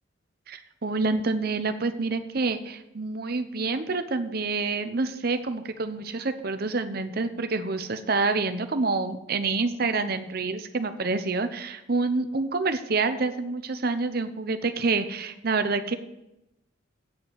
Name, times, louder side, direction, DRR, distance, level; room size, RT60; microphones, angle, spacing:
voice 1, 0.5-16.0, right 3 dB, 50° right, 9 dB, 0.8 m, -27 dB
9.0 x 5.7 x 8.2 m, 0.89 s
head